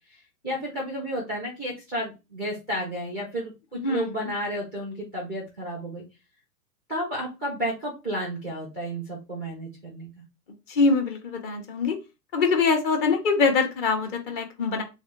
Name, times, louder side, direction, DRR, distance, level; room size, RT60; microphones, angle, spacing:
voice 1, 0.4-6.0 6.9-10.1, equal, 5° left, 0 dB, 0.4 m, -32 dB
voice 2, 3.7-4.3 10.7-12.0 12.3-14.8, left 4 dB, 30° left, 4 dB, 0.9 m, -24 dB
3.3 x 2.8 x 3.4 m, 0.26 s
figure-of-eight pair, 110°, 48 cm